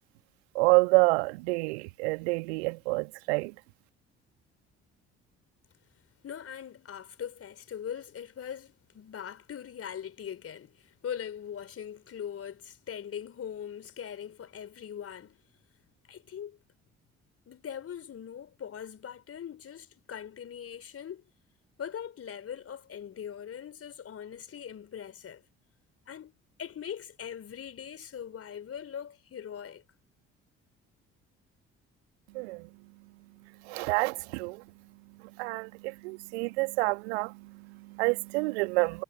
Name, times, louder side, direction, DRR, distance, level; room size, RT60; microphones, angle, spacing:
voice 1, 0.5-3.6 32.3-32.7 33.6-34.6 35.1-39.0, right 27 dB, 65° right, 1.8 m, -28 dB
voice 2, 6.2-15.4 16.1-16.6 17.5-21.2 21.8-25.4 26.1-26.3 26.6-29.8, left 8 dB, 40° left, 4.1 m, -41 dB
figure-of-eight pair, 45°, 35 cm